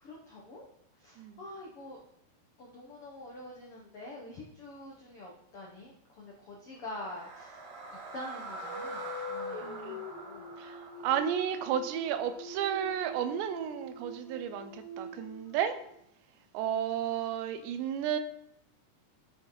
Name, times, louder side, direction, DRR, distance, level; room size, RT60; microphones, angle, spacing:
voice 1, 0.0-0.6 1.0-2.0 2.6-7.6 8.1-10.5, left 1 dB, 75° left, -2 dB, 1.3 m, -46 dB
sound 1, 6.8-12.9, right 2 dB, 55° right, 1.8 m, -45 dB
sound 2, 8.6-16.0, left 1 dB, 60° left, 1.8 m, -43 dB
voice 2, 9.6-10.1 10.6-15.8 16.5-18.2, right 9 dB, 90° right, 9 dB, 3.1 m, -33 dB
11.5 x 8.1 x 4.1 m, 0.74 s
omnidirectional pair, 4.9 m